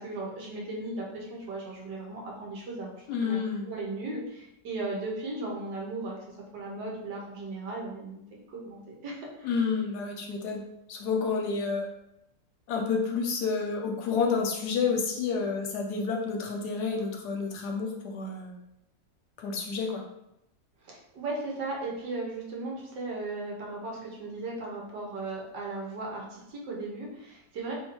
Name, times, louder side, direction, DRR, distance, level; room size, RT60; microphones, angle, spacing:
voice 1, 0.0-3.4 3.6-6.2 6.5-8.2 8.5-9.5 20.8-27.7, right 2 dB, 75° right, -2 dB, 1.6 m, -36 dB
voice 2, 3.1-3.7 9.4-10.6 10.9-11.9 12.7-18.5 19.4-20.0, left 5 dB, 70° left, 1 dB, 1.1 m, -29 dB
3.3 x 2.7 x 4.4 m, 0.85 s
omnidirectional pair, 1.9 m